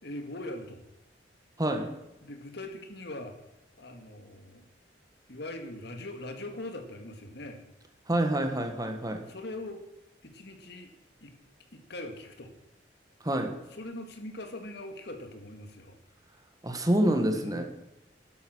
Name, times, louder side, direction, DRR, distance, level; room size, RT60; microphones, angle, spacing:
voice 1, 0.0-0.8 2.2-3.4 3.8-4.6 5.3-7.6 9.3-9.8 10.2-10.9 11.2-11.3 11.7-12.5 13.7-16.0 17.3-17.6, left 1 dB, 65° left, 6 dB, 2.2 m, -41 dB
voice 2, 1.6-1.9 8.1-9.3 13.2-13.6 16.6-17.6, right 1 dB, 20° right, 6 dB, 1.7 m, -27 dB
12.0 x 12.0 x 6.4 m, 0.93 s
head